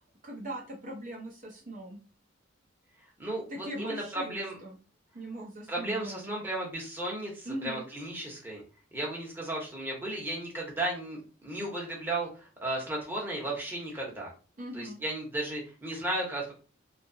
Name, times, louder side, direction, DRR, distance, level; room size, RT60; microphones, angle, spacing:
voice 1, 0.2-2.0 3.5-4.8 5.1-6.3 7.4-7.9 14.6-15.0, right 1 dB, 40° right, -1 dB, 0.6 m, -40 dB
voice 2, 3.2-4.6 5.7-8.6 8.9-14.3 14.7-16.5, right 1 dB, 10° right, -3 dB, 0.9 m, -34 dB
2.8 x 2.3 x 2.6 m, 0.36 s
head